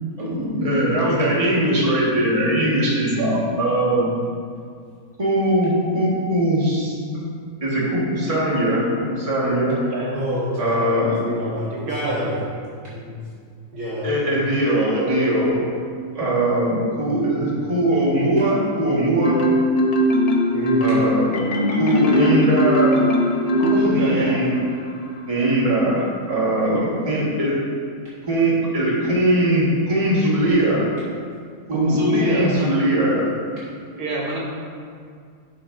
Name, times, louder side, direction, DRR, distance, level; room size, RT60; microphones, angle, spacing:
voice 1, 0.2-4.1 5.2-7.2 7.6-9.8 10.6-11.2 14.0-15.6 16.1-19.4 20.8-21.3 21.7-23.0 23.9-24.5 25.3-26.0 26.3-27.5 28.3-30.8 31.7-33.2, right 1 dB, 25° right, -6 dB, 1.5 m, -20 dB
voice 2, 10.1-12.4 12.8-13.1 13.7-14.2 17.1-17.6 20.5-21.1, equal, 60° right, -7 dB, 1.4 m, -29 dB
voice 3, 11.9-12.4 23.6-24.4 31.7-32.9 33.9-34.4, right 1 dB, 80° right, -3 dB, 1.7 m, -24 dB
Marimba xylophone, 19.2-24.4, equal, 40° left, 0.5 m, -19 dB
11.5 x 6.0 x 2.6 m, 2.2 s
omnidirectional pair, 1.6 m